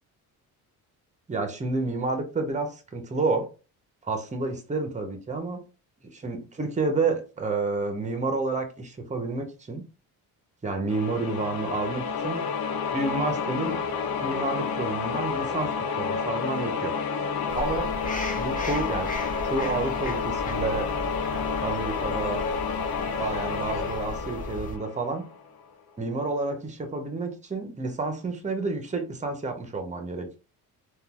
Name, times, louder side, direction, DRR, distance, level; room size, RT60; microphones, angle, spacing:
voice 1, 1.3-3.5 4.0-5.6 6.1-9.8 10.6-12.4 12.9-13.8 14.2-16.9 17.5-17.9 18.4-19.1 19.4-20.9 21.6-22.5 23.2-25.2 26.0-30.4, right 3 dB, 20° right, 6 dB, 0.8 m, -30 dB
sound 1, 10.9-25.5, left 5 dB, 70° left, 0.7 m, -30 dB
sound 2, 17.5-24.8, left 1 dB, 20° left, 0.8 m, -37 dB
3.8 x 2.5 x 2.4 m, 0.34 s
cardioid pair, 95°, 38 cm